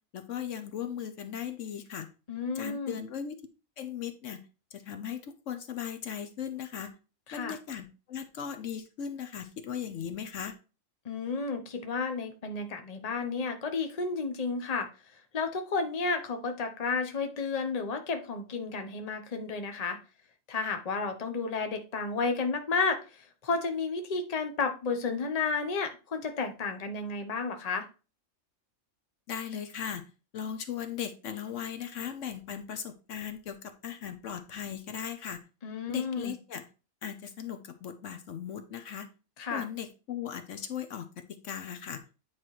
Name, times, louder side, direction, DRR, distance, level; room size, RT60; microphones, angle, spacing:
voice 1, 0.1-2.1 2.5-3.4 3.8-4.4 4.7-6.9 7.3-10.5 29.3-30.0 30.3-35.4 35.9-36.6 37.0-39.1 39.5-42.0, left 8 dB, 70° left, 9 dB, 1.1 m, -38 dB
voice 2, 2.3-3.0 7.3-7.6 11.0-14.9 15.3-20.0 20.5-27.9 35.6-36.4 39.4-39.6, left 4 dB, 35° left, 6 dB, 0.9 m, -32 dB
9.0 x 4.6 x 3.1 m, 0.33 s
omnidirectional pair, 1.4 m